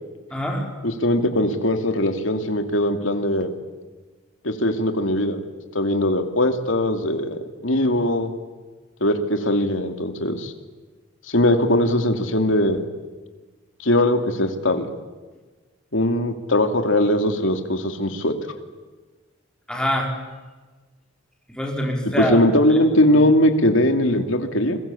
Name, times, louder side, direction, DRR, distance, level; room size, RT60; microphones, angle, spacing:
voice 1, 0.3-0.7 19.7-20.2 21.5-22.4 22.7-22.8 23.1-23.2, equal, 5° left, 0 dB, 4.9 m, -25 dB
voice 2, 0.8-3.5 4.4-5.4 5.7-8.3 9.0-10.5 11.3-12.8 13.8-14.9 15.9-18.3 22.2-24.8, left 1 dB, 75° left, 6 dB, 2.7 m, -20 dB
30.0 x 21.5 x 8.5 m, 1.3 s
head